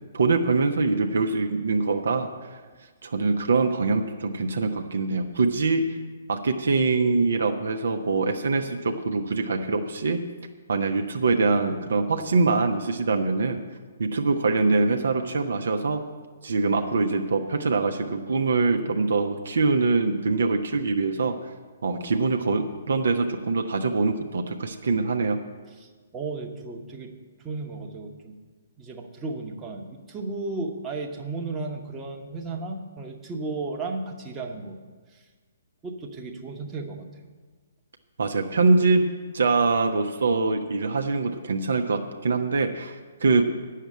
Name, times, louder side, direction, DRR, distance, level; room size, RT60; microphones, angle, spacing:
voice 1, 0.1-2.6 3.0-6.0 6.3-10.2 10.7-13.6 14.0-16.0 16.4-21.4 21.8-25.4 38.2-39.1 39.3-43.5, right 3 dB, 60° right, 5 dB, 0.7 m, -24 dB
voice 2, 25.7-27.1 27.4-28.4 28.8-34.8 35.1-35.2 35.8-37.1, right 3 dB, 15° right, 0 dB, 1.0 m, -34 dB
9.0 x 6.6 x 8.5 m, 1.4 s
figure-of-eight pair, 125°, 0 cm